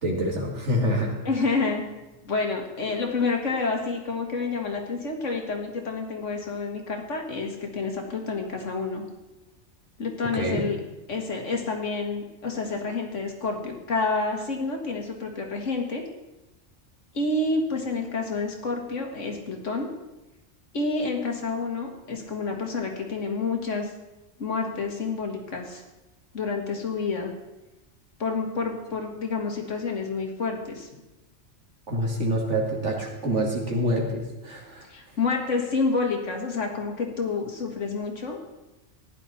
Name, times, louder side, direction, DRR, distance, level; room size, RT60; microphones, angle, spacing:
voice 1, 0.0-1.1 10.3-10.7 31.9-34.9, equal, 70° right, -1 dB, 2.5 m, -26 dB
voice 2, 1.3-1.8 2.2-9.0 10.0-10.8 11.1-16.0 17.1-19.9 20.7-23.9 24.4-25.8 26.3-27.3 28.2-30.9 34.9-38.4, left 4 dB, 80° left, 2 dB, 2.2 m, -29 dB
15.0 x 10.5 x 4.2 m, 1.0 s
omnidirectional pair, 1.3 m